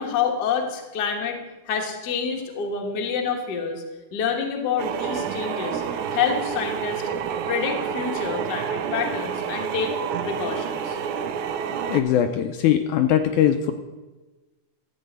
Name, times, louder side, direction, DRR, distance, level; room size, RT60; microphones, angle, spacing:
voice 1, 0.0-1.4 1.7-3.8 4.1-5.8 6.1-7.0 7.5-10.0 10.2-11.0, left 6 dB, 60° left, 2 dB, 1.1 m, -27 dB
sound 1, 4.8-12.0, right 7 dB, 75° right, 1.9 m, -29 dB
voice 2, 11.9-13.7, left 10 dB, 80° left, 7 dB, 1.8 m, -20 dB
13.0 x 4.3 x 8.0 m, 1.2 s
omnidirectional pair, 3.8 m